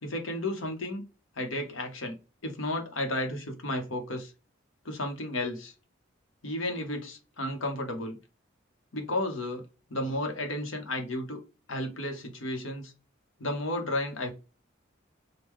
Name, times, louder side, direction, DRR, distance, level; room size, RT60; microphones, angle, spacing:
voice 1, 0.0-1.0 1.4-4.3 4.8-5.7 6.4-8.2 8.9-9.6 9.9-11.4 11.7-12.9 13.4-14.3, left 1 dB, 85° left, 0.9 m, -33 dB
3.6 x 2.2 x 3.1 m
head